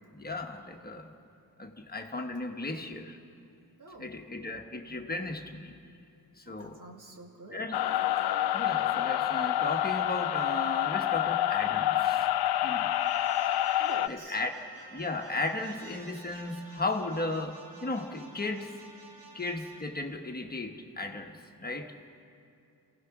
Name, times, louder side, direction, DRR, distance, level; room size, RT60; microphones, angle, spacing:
voice 1, 0.1-1.1 1.6-3.2 4.0-5.8 6.4-6.8 7.5-7.8 8.5-12.3 12.6-12.9 14.1-14.5 14.9-18.8 19.3-21.9, left 2 dB, 25° left, 3 dB, 1.2 m, -35 dB
voice 2, 3.8-4.1 6.5-7.6 13.7-14.4, right 2 dB, 55° right, 1 dB, 2.4 m, -47 dB
sound 1, 7.7-14.1, left 13 dB, 80° left, 0.6 m, -28 dB
sound 2, 12.9-19.8, right 3 dB, 80° right, 3.4 m, -51 dB
29.5 x 16.5 x 6.0 m, 2.6 s
wide cardioid pair, 150°, 37 cm